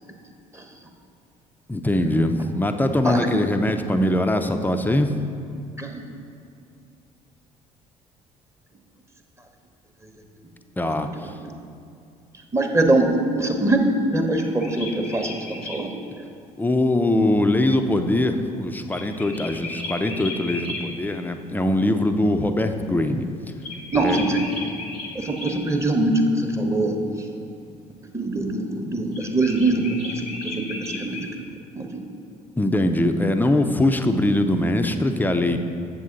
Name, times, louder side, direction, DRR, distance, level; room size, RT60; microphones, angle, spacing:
voice 1, 1.7-5.1 10.8-11.3 16.6-23.3 24.0-24.2 32.6-35.6, left 1 dB, 10° left, 7 dB, 0.5 m, -22 dB
voice 2, 12.5-16.0 23.9-24.5 25.1-27.3 28.1-31.3 31.7-32.0, right 2 dB, 15° right, 3 dB, 0.9 m, -23 dB
sound 1, 14.3-15.8 18.9-20.8 23.6-25.6 29.1-31.3, left 2 dB, 85° left, 1.1 m, -35 dB
7.6 x 7.3 x 3.8 m, 2.4 s
figure-of-eight pair, 50°, 19 cm